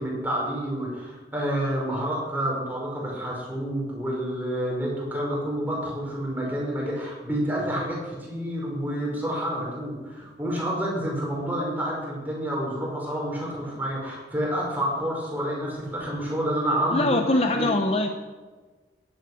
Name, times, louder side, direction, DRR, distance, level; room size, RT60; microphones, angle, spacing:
voice 1, 0.0-17.7, equal, 10° right, -4 dB, 5.4 m, -29 dB
voice 2, 16.9-18.1, left 2 dB, 35° left, 6 dB, 0.8 m, -22 dB
15.0 x 11.5 x 6.3 m, 1.3 s
head